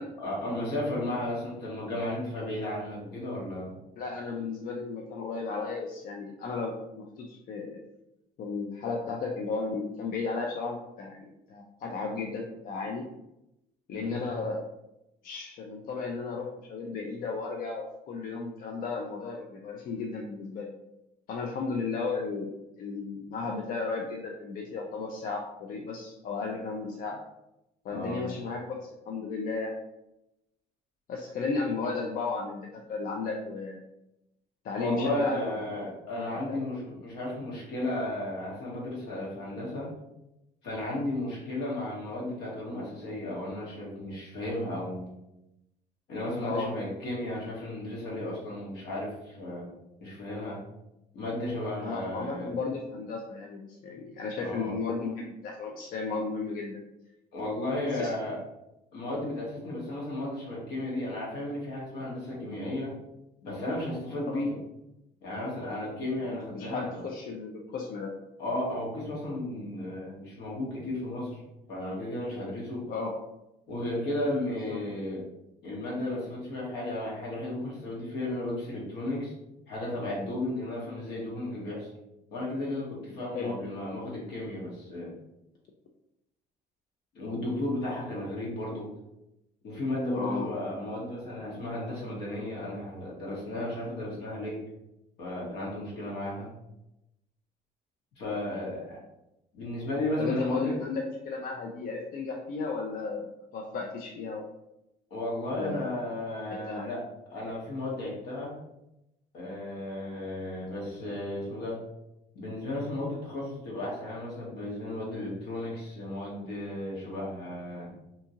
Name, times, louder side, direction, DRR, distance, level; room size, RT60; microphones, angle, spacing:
voice 1, 0.2-3.8 13.9-14.2 27.9-28.4 34.7-39.9 40.6-45.1 46.1-49.7 50.0-50.6 51.1-52.5 54.4-54.8 57.3-58.4 58.9-62.9 63.4-64.6 65.2-67.0 68.4-71.4 71.7-72.8 73.7-75.2 75.6-79.3 79.7-81.9 82.3-85.2 87.1-88.9 89.6-94.6 95.2-96.5 98.2-99.0 99.5-100.8 105.1-107.0 107.3-108.5 109.3-111.8 112.3-117.9, left 1 dB, 80° left, -4 dB, 1.2 m, -34 dB
voice 2, 4.0-7.8 8.4-13.0 13.9-14.6 15.2-20.7 21.3-22.5 22.8-27.2 27.8-29.7 31.1-33.8 34.6-35.4 36.2-36.6 46.4-46.7 51.8-56.8 57.9-58.1 64.3-64.5 66.3-68.1 72.9-73.1 74.6-74.8 83.3-83.5 90.1-90.5 100.2-104.5 105.5-105.9 106.5-106.9, left 4 dB, 55° left, 0 dB, 0.4 m, -34 dB
2.7 x 2.4 x 2.7 m, 0.89 s
cardioid pair, 110°, 17 cm